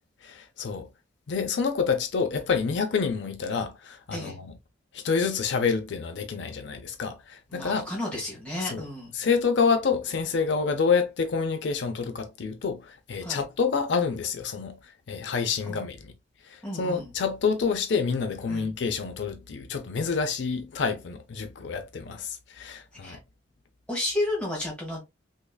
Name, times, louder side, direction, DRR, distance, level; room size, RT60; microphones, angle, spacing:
voice 1, 0.2-0.9 1.3-4.6 4.9-7.9 8.6-8.8 9.1-14.8 15.1-16.1 16.5-23.2, left 5 dB, 70° left, 0.5 m, -28 dB
voice 2, 7.5-9.1 13.2-13.4 15.7-15.8 16.6-17.1 18.5-18.7 23.0-23.2 23.9-25.0, left 1 dB, 5° left, 1.3 m, -32 dB
3.6 x 3.0 x 2.2 m
head